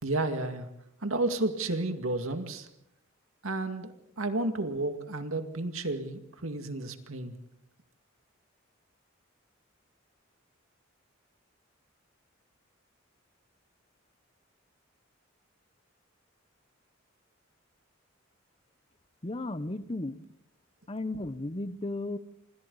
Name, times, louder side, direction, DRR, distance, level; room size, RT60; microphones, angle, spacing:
voice 1, 0.0-0.7 1.0-2.7 3.4-7.4, right 2 dB, 90° right, 7 dB, 2.2 m, -32 dB
voice 2, 19.2-20.3 20.9-22.2, left 2 dB, 25° left, 14 dB, 0.8 m, -34 dB
27.5 x 25.5 x 4.1 m, 0.81 s
head